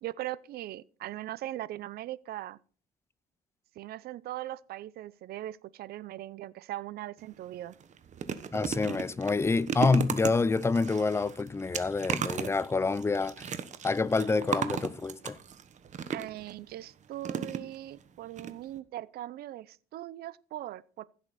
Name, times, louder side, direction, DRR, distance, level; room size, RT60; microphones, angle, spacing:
voice 1, 0.0-2.6 3.8-7.8 16.1-21.0, right 14 dB, 65° right, 0.6 m, -40 dB
sound 1, 7.2-7.3 7.7-16.5 17.2-18.0 18.4-18.5 18.8-18.9, right 7 dB, 45° right, 1.2 m, -35 dB
voice 2, 8.5-13.6 13.8-15.4, left 4 dB, 15° left, 0.6 m, -27 dB
15.0 x 7.8 x 4.2 m
cardioid pair, 110°, 17 cm